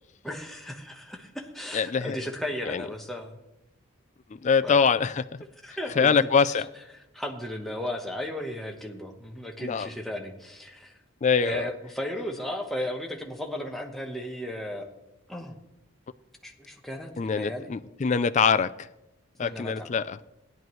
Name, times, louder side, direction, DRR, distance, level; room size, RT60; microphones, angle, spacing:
voice 1, 0.2-3.3 4.6-4.8 5.6-6.3 7.1-10.9 11.4-14.9 15.3-15.6 16.4-17.7 19.4-19.9, left 1 dB, ahead, 1.1 m, -35 dB
voice 2, 1.7-2.2 2.6-2.9 4.3-5.4 5.9-6.7 9.6-9.9 11.2-11.7 17.2-18.9 19.4-20.2, left 5 dB, 35° left, 0.3 m, -24 dB
17.0 x 10.5 x 3.1 m
head